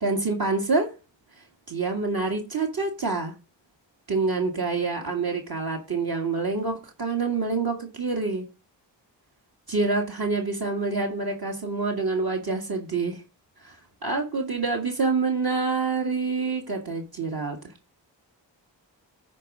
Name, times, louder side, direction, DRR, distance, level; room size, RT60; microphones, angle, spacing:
voice 1, 0.0-0.9 1.7-3.3 4.1-8.4 9.7-13.2 13.6-13.8 14.0-17.6, right 4 dB, 50° right, 1 dB, 2.0 m, -26 dB
9.8 x 3.9 x 6.2 m, 0.30 s
cardioid pair, 55°, 46 cm